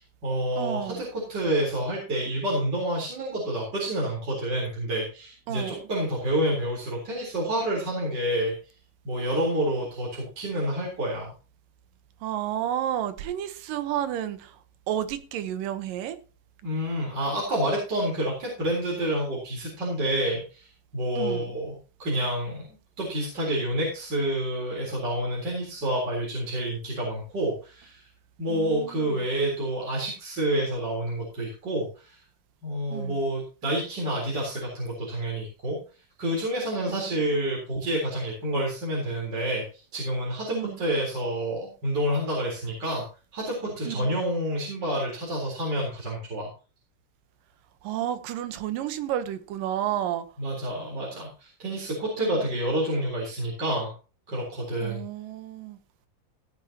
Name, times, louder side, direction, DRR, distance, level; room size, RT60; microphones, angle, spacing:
voice 1, 0.0-8.5 9.0-11.3 16.6-21.7 22.0-22.7 23.0-28.0 28.4-32.2 32.6-35.8 36.2-39.6 39.9-43.1 43.3-46.5 50.4-53.9 54.3-55.0, right 1 dB, 30° right, 4.4 m, -28 dB
voice 2, 0.6-1.0 5.5-5.8 12.2-14.5 14.9-16.2 21.2-21.5 28.5-29.1 32.9-33.2 36.9-37.1 40.5-40.8 43.8-44.1 47.8-50.3 52.2-52.3 54.8-55.8, right 11 dB, 80° right, 2.8 m, -31 dB
16.0 x 9.1 x 2.9 m
omnidirectional pair, 3.8 m